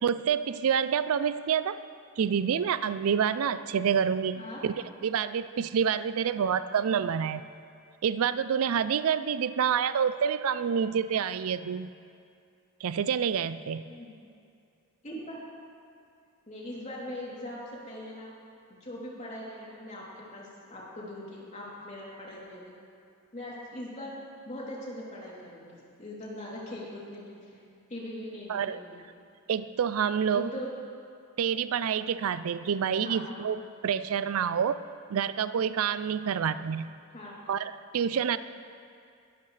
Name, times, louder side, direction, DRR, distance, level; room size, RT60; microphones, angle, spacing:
voice 1, 0.0-1.8 2.2-4.7 5.0-7.4 8.0-11.9 12.8-13.9 28.5-28.8 29.5-30.5 31.4-34.8 35.1-36.9 37.5-38.4, right 7 dB, 70° right, 14 dB, 0.4 m, -28 dB
voice 2, 15.0-15.4 16.5-18.3 18.7-22.7 23.3-24.2 24.5-27.6 27.9-29.0 30.3-30.7 33.0-33.4 36.3-36.4 37.1-37.3, left 1 dB, 35° left, -6 dB, 3.2 m, -41 dB
21.5 x 12.5 x 3.3 m, 2.4 s
head